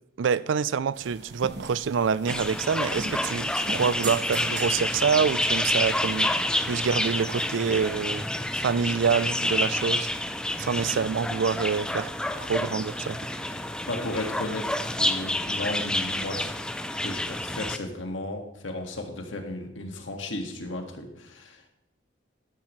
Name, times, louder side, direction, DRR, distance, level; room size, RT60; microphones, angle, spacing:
voice 1, 0.2-8.2 8.5-10.1 10.6-12.1 12.4-13.2, right 6 dB, 80° right, 0.4 m, -26 dB
sound 1, 0.9-7.9, right 2 dB, 60° right, 1.4 m, -42 dB
sound 2, 2.3-17.8, left 1 dB, 5° left, 0.4 m, -29 dB
voice 2, 13.6-16.5 17.0-21.7, left 1 dB, 90° left, 1.8 m, -35 dB
13.0 x 12.0 x 3.2 m
head